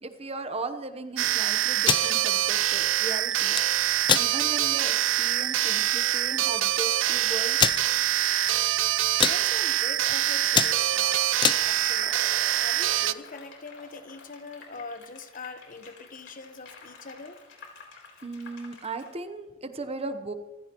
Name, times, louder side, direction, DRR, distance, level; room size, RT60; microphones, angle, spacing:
voice 1, 0.0-3.5 3.9-7.6 18.2-20.3, right 3 dB, 30° right, 9 dB, 1.0 m, -37 dB
sound 1, 1.2-13.1, right 12 dB, 85° right, 0.6 m, -25 dB
sound 2, 1.7-2.1 3.3-3.6 4.0-4.3 4.8-4.9 5.2-5.5 6.3-6.4 6.5-6.6 7.6-7.8 8.4-8.8 9.0-9.4 9.9-10.1 10.4-11.6, left 7 dB, 25° left, 0.4 m, -24 dB
sound 3, 6.9-19.1, left 3 dB, 70° left, 3.9 m, -48 dB
voice 2, 9.2-11.2 11.6-12.1 12.6-17.4, left 3 dB, 45° left, 9 dB, 1.1 m, -42 dB
26.0 x 15.5 x 3.0 m, 1.1 s
head